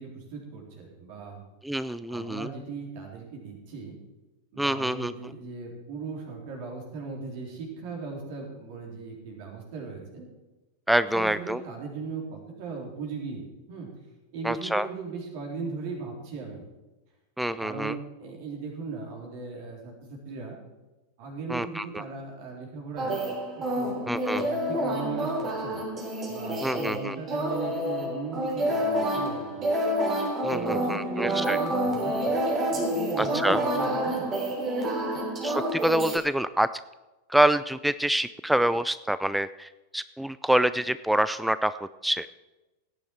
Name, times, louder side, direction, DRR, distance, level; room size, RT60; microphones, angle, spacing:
voice 1, 0.0-1.4 2.1-4.0 4.5-10.3 11.1-13.4 13.7-13.9 14.3-16.6 17.6-20.6 21.2-23.2 23.6-25.8 26.3-29.7 30.5-32.4 32.7-34.3 35.1-35.2, right 4 dB, 50° right, 0 dB, 3.9 m, -38 dB
voice 2, 1.6-2.5 4.6-5.1 10.9-11.6 14.4-14.9 17.4-17.9 21.5-22.0 24.1-24.5 26.6-27.2 30.4-31.6 33.2-33.6 35.4-36.7 37.3-41.7 42.0-42.3, right 1 dB, ahead, 15 dB, 0.3 m, -26 dB
sound 1, 23.0-36.2, right 1 dB, 25° right, 3.4 m, -28 dB
17.0 x 10.0 x 4.6 m, 1.1 s
figure-of-eight pair, 90°, 0 cm